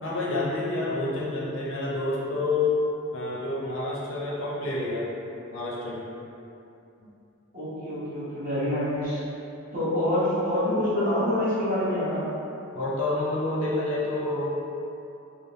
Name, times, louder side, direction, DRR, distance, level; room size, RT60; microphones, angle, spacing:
voice 1, 0.0-2.8 3.1-5.1 5.5-6.1 7.0-7.1 12.7-14.5, left 2 dB, 65° left, -5 dB, 0.6 m, -28 dB
voice 2, 7.5-9.2 9.7-12.2, left 1 dB, 40° right, -11 dB, 0.8 m, -26 dB
3.4 x 2.0 x 2.7 m, 2.8 s
head